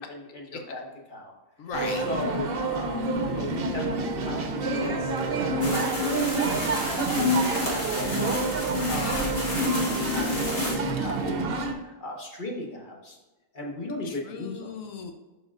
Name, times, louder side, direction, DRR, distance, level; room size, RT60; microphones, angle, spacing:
voice 1, 0.0-1.3 2.0-4.9 5.3-8.3 8.7-13.2 13.5-14.7, left 2 dB, 40° left, -1 dB, 1.3 m, -37 dB
voice 2, 1.6-2.0 8.8-9.2 14.0-15.1, left 5 dB, 80° left, 5 dB, 1.0 m, -38 dB
sound 1, 1.7-11.7, right 2 dB, 55° right, 0.8 m, -27 dB
sound 2, 5.6-10.8, left 1 dB, 55° left, 1.9 m, -33 dB
11.0 x 4.2 x 2.5 m, 1.1 s
omnidirectional pair, 1.4 m